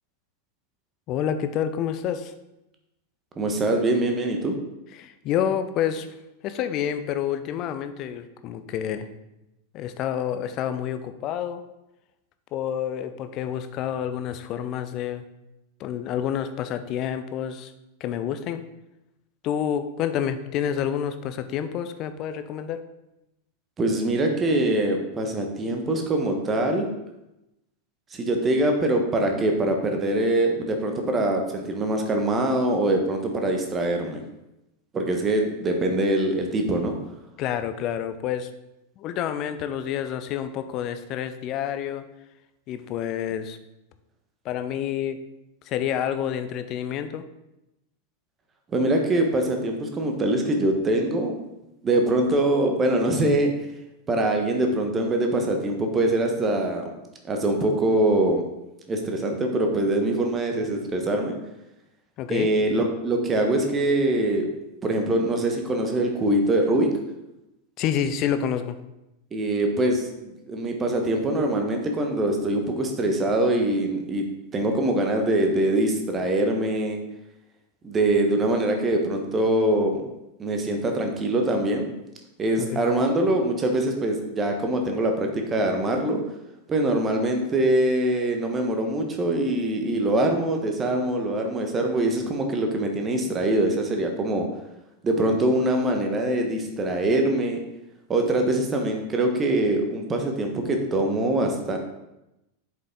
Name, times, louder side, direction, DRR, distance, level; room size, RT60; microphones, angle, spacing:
voice 1, 1.1-2.3 5.0-6.1 6.4-9.1 9.7-11.6 12.5-15.2 15.8-17.7 18.0-18.6 19.4-22.8 37.4-38.5 39.0-42.0 42.7-43.6 44.4-45.2 45.7-47.2 62.2-62.5 67.8-68.8 82.6-82.8, left 9 dB, 35° left, 10 dB, 0.6 m, -28 dB
voice 2, 3.4-4.6 23.8-26.9 28.1-34.2 34.9-36.9 48.7-51.4 51.8-53.5 54.1-56.8 57.2-58.4 58.9-61.4 62.3-64.5 64.8-66.9 69.3-74.2 74.5-77.0 77.8-80.0 80.4-81.9 82.4-86.2 86.7-94.5 95.0-97.6 98.1-101.8, right 1 dB, 20° right, 3 dB, 1.3 m, -23 dB
7.6 x 5.6 x 3.8 m, 0.93 s
figure-of-eight pair, 90°, 0 cm